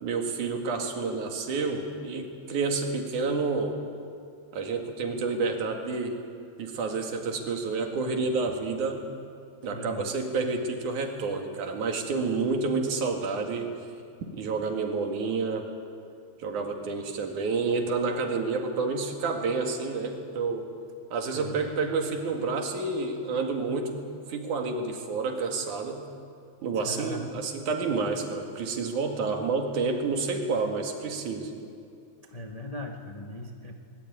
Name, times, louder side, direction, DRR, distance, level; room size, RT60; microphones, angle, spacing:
voice 1, 0.0-3.8 4.5-6.2 6.6-9.0 9.6-13.7 14.3-15.7 16.4-20.7 21.1-24.0 24.3-26.0 26.6-31.5, right 4 dB, 90° right, 3 dB, 3.6 m, -29 dB
voice 2, 9.7-10.1 21.3-21.7 26.7-27.4 32.2-33.7, left 1 dB, 40° left, 2 dB, 0.5 m, -39 dB
20.0 x 20.0 x 9.4 m, 2.4 s
omnidirectional pair, 3.4 m